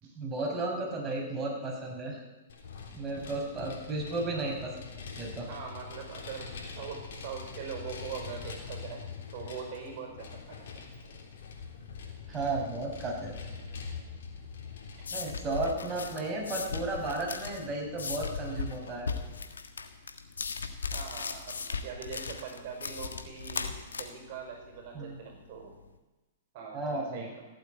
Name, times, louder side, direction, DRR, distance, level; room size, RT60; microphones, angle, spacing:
voice 1, 0.2-2.2 2.9-5.5 12.3-13.3 15.1-19.1 24.9-25.2 26.7-27.3, right 2 dB, 20° right, -2 dB, 5.7 m, -34 dB
Vehicle, 2.5-19.4, left 5 dB, 65° left, 3.5 m, -45 dB
voice 2, 5.5-9.0 9.3-10.7 15.0-15.1 20.9-25.7 26.5-27.5, right 6 dB, 50° right, 2 dB, 4.8 m, -42 dB
sound 1, 14.5-25.9, left 5 dB, 85° left, 1.5 m, -38 dB
15.5 x 8.4 x 9.3 m, 1.1 s
hypercardioid pair, 115°, 0 cm